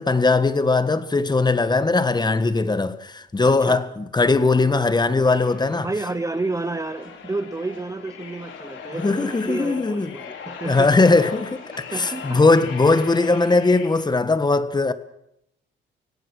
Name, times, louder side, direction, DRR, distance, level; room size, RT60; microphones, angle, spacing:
voice 1, 0.0-5.9 9.0-10.1 10.6-11.5 11.8-14.9, left 3 dB, 20° left, 1.6 m, -19 dB
voice 2, 3.4-3.9 5.7-10.9 11.9-12.4, right 3 dB, 15° right, 0.9 m, -30 dB
sound 1, 5.3-13.9, left 6 dB, 75° left, 4.6 m, -39 dB
25.0 x 17.5 x 6.3 m
cardioid pair, 90°, 20 cm